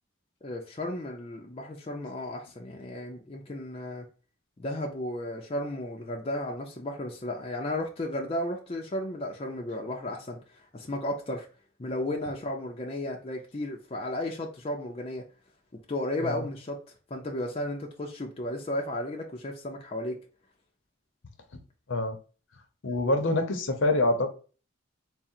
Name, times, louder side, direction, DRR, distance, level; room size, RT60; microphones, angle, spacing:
voice 1, 0.4-4.0 4.6-11.5 11.8-15.3 15.9-16.8 17.1-20.2, left 1 dB, 30° left, 0.5 m, -34 dB
voice 2, 22.8-24.3, left 2 dB, 65° left, 0.7 m, -25 dB
3.7 x 2.1 x 4.2 m
head